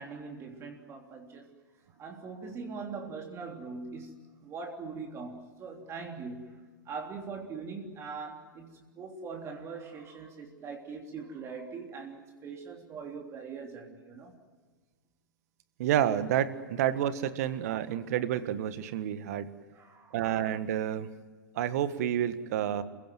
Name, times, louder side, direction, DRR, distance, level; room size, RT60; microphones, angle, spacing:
voice 1, 0.0-1.5 2.0-14.4 19.7-20.3, right 4 dB, 25° right, 3.4 m, -42 dB
voice 2, 15.8-19.5 20.1-21.1 21.5-22.8, right 10 dB, 50° right, 1.6 m, -29 dB
29.5 x 16.0 x 9.4 m
figure-of-eight pair, 100°, 11 cm